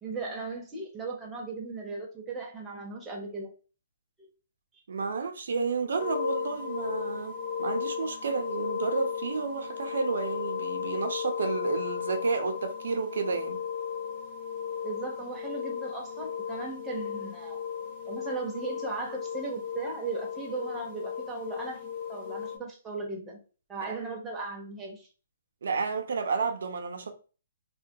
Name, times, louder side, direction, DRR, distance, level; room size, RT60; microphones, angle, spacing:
voice 1, 0.0-3.5 14.8-17.6 18.0-23.4 23.7-25.1, right 3 dB, 10° right, 0.6 m, -37 dB
voice 2, 4.9-13.6 23.9-24.1 25.6-27.1, right 4 dB, 80° right, 0.5 m, -31 dB
sound 1, 6.0-22.6, left 7 dB, 40° left, 0.5 m, -35 dB
2.2 x 2.2 x 2.7 m
hypercardioid pair, 160°, 0 cm